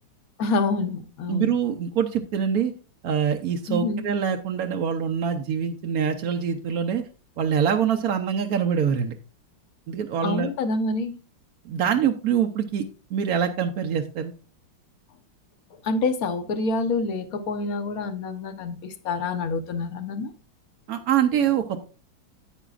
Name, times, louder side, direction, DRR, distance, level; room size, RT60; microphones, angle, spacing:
voice 1, 0.4-1.5 3.7-4.0 10.2-11.2 15.8-20.3, left 3 dB, 55° left, 10 dB, 1.3 m, -27 dB
voice 2, 1.3-2.7 3.0-7.0 7.4-9.1 9.9-10.5 11.6-12.8 13.1-14.3 20.9-21.8, right 8 dB, 65° right, 4 dB, 1.0 m, -24 dB
9.8 x 9.2 x 2.4 m, 0.35 s
omnidirectional pair, 2.1 m